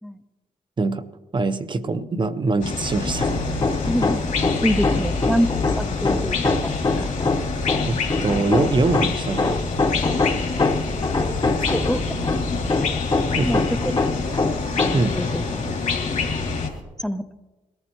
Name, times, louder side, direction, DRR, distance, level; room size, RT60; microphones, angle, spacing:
voice 1, 1.3-3.3 7.9-9.6 13.4-13.6 14.9-15.1, right 3 dB, 35° right, 11 dB, 0.7 m, -23 dB
sound 1, 2.6-16.7, left 5 dB, 65° left, 2.5 m, -27 dB
sound 2, 2.9-16.8, right 3 dB, 80° right, 2.0 m, -36 dB
Hammer, 3.1-15.2, left 3 dB, 35° left, 1.0 m, -24 dB
voice 2, 3.9-4.3 4.6-5.5 5.8-6.7 7.0-7.1 11.4-12.2 12.5-12.7 13.4-14.0 15.1-15.4 17.0-17.3, equal, 5° left, 9 dB, 0.5 m, -26 dB
20.5 x 14.0 x 3.0 m, 1.2 s
cardioid pair, 80°, 14 cm